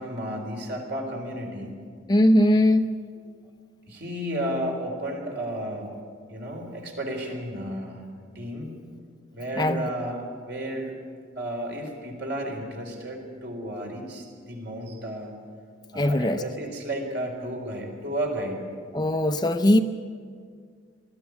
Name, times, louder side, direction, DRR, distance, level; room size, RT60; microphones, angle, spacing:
voice 1, 0.0-1.8 3.9-5.9 6.3-8.0 8.3-8.7 9.3-10.9 11.4-15.4 15.9-18.6 19.2-19.6, right 1 dB, 55° right, 1 dB, 4.0 m, -33 dB
voice 2, 2.1-2.9 9.6-9.9 15.9-16.4 18.9-19.8, left 1 dB, 20° left, 7 dB, 0.6 m, -20 dB
19.5 x 14.0 x 9.6 m, 2.1 s
head